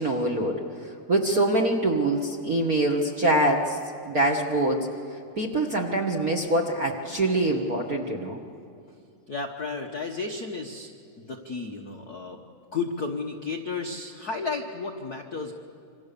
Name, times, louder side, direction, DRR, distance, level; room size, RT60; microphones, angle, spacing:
voice 1, 0.0-3.8 4.1-4.9 5.4-8.4, right 1 dB, 45° right, 1 dB, 1.3 m, -24 dB
voice 2, 9.3-10.9 11.2-12.4 12.7-15.5, left 4 dB, 65° left, 3 dB, 0.9 m, -33 dB
27.5 x 25.5 x 6.8 m, 2.4 s
omnidirectional pair, 3.6 m